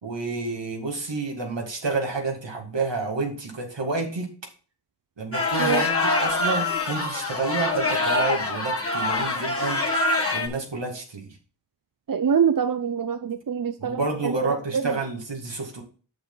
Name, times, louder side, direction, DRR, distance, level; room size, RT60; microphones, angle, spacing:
voice 1, 0.0-4.3 5.2-11.4 13.8-15.8, right 3 dB, 80° right, 2.3 m, -29 dB
sound 1, 5.3-10.5, left 2 dB, 30° left, 1.7 m, -25 dB
voice 2, 12.1-14.4 14.7-15.0, right 7 dB, 50° right, 0.6 m, -25 dB
7.7 x 6.8 x 3.9 m
cardioid pair, 40°, 43 cm